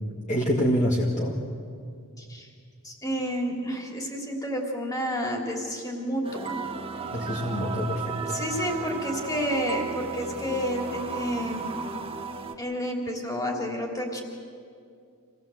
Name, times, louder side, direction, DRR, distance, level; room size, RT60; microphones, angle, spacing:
voice 1, 0.3-1.4 7.1-8.2, equal, 35° left, -2 dB, 1.7 m, -25 dB
voice 2, 2.2-2.5 2.8-6.6 8.3-11.8 12.6-14.2, equal, 15° left, 1 dB, 3.1 m, -30 dB
sound 1, 6.2-12.6, right 4 dB, 25° right, 1.3 m, -34 dB
26.5 x 17.0 x 7.7 m, 2.3 s
head